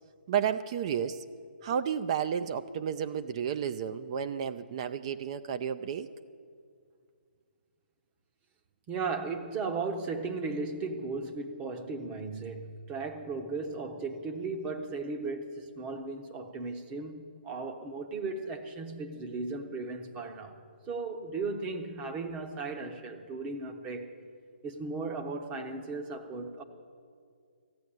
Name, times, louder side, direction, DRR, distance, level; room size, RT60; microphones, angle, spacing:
voice 1, 0.3-1.2 1.6-6.1, right 8 dB, 35° right, 0.4 m, -32 dB
voice 2, 8.9-20.6 20.9-24.1 24.6-26.6, right 3 dB, 20° right, 0.8 m, -36 dB
14.5 x 8.3 x 8.9 m
hypercardioid pair, 150°, 6 cm